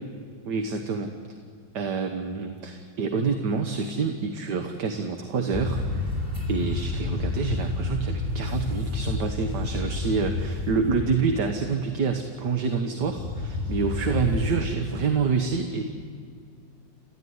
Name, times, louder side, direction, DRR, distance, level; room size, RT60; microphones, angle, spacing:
voice 1, 0.5-1.1 1.7-6.1 6.5-15.8, right 5 dB, 65° right, 5 dB, 1.8 m, -27 dB
sound 1, 5.5-11.5 13.0-14.5, left 3 dB, 10° right, 6.8 m, -29 dB
29.0 x 14.5 x 9.6 m, 2.2 s
omnidirectional pair, 2.1 m